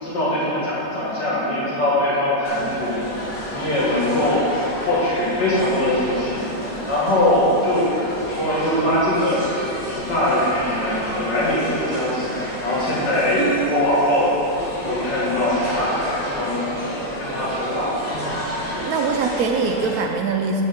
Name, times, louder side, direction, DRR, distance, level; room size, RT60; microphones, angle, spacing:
voice 1, 0.0-3.0 3.5-4.4 4.8-7.9 8.3-9.5 9.8-14.3 14.8-16.0 16.2-16.6 17.2-17.9 18.5-18.9, left 1 dB, 90° left, -7 dB, 2.6 m, -22 dB
sound 1, 2.4-20.0, equal, 65° left, 1.9 m, -30 dB
voice 2, 13.4-13.9 18.8-20.6, right 5 dB, 70° right, 3 dB, 0.9 m, -23 dB
6.6 x 4.7 x 6.9 m, 2.9 s
omnidirectional pair, 1.8 m